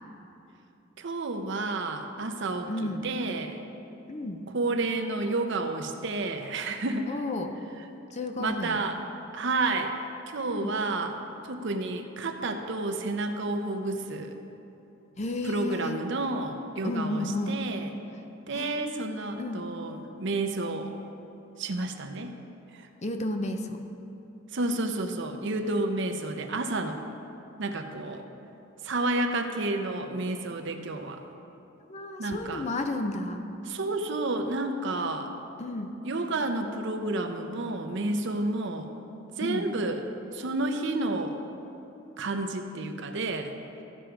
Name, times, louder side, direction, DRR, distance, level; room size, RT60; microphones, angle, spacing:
voice 1, 1.0-3.6 4.5-7.1 8.4-9.0 9.3-9.9 10.3-11.2 11.5-14.3 15.4-17.9 18.5-20.9 21.6-22.3 22.7-22.9 24.5-27.0 27.6-28.2 28.8-31.2 32.2-32.7 33.7-35.3 36.0-38.9 39.4-40.0 40.3-41.4 42.2-43.5, right 2 dB, 65° right, 6 dB, 0.7 m, -30 dB
voice 2, 2.7-3.1 4.1-4.5 7.1-7.6 8.1-8.8 10.5-10.7 15.2-16.0 16.8-17.6 18.5-19.0 19.4-19.7 23.0-23.8 31.9-33.4 35.6-35.9 39.4-39.7, left 2 dB, 35° left, 6 dB, 0.6 m, -32 dB
14.0 x 5.1 x 4.6 m, 3.0 s
head